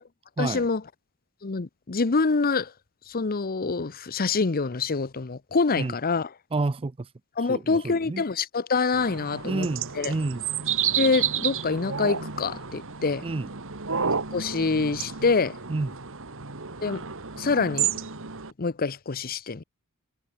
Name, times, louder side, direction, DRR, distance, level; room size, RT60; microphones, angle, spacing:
voice 1, 0.4-0.8 1.4-2.7 3.1-6.3 7.4-9.7 10.0-10.1 11.0-13.2 14.3-15.6 16.8-17.0 17.4-17.9 18.6-19.6, left 4 dB, 40° left, 0.8 m, -26 dB
voice 2, 6.5-6.9 7.5-8.2 9.4-10.4 13.2-13.5 15.7-15.9, right 3 dB, 25° right, 0.4 m, -29 dB
sound 1, 8.9-18.5, right 7 dB, 60° right, 2.3 m, -31 dB
head